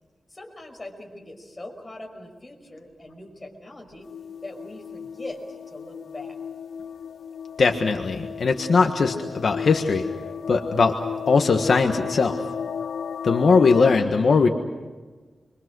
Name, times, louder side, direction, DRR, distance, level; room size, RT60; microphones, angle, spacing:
voice 1, 0.3-4.1 4.4-6.3, left 1 dB, 25° left, 1 dB, 5.6 m, -41 dB
sound 1, 4.0-14.0, left 7 dB, 85° left, 0.7 m, -34 dB
voice 2, 7.6-10.1 10.5-11.0 11.3-12.4 13.2-14.5, left 4 dB, 65° left, 4 dB, 1.5 m, -20 dB
29.5 x 24.0 x 6.3 m, 1.3 s
wide cardioid pair, 100°, 0 cm